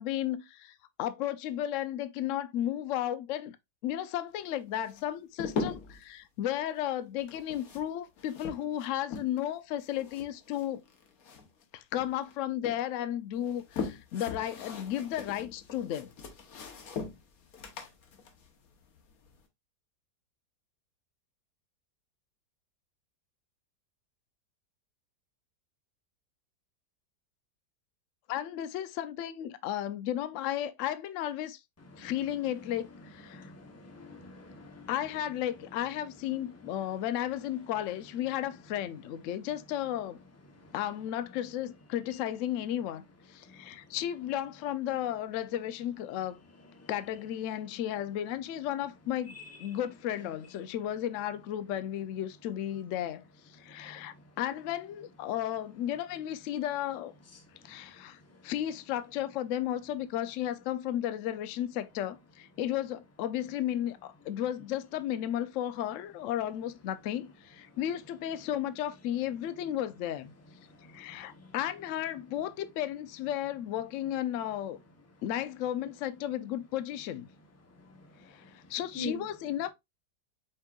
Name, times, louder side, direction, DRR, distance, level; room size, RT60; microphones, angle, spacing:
voice 1, 0.0-3.6 3.8-10.8 11.7-16.1 28.3-31.6 32.0-33.5 34.9-40.2 40.7-43.0 43.3-46.4 46.9-57.1 57.6-70.3 70.9-74.8 75.2-77.3 78.2-79.7, left 11 dB, 75° left, 0.7 m, -34 dB
sound 1, 4.8-6.1 7.2-9.5 9.8-11.6 11.9-12.8 13.3-19.4, left 5 dB, 60° left, 1.3 m, -40 dB
voice 2, 33.3-34.9 46.8-46.9 49.4-49.5 78.9-79.2, left 1 dB, 20° left, 0.3 m, -43 dB
5.4 x 3.7 x 2.3 m
omnidirectional pair, 1.8 m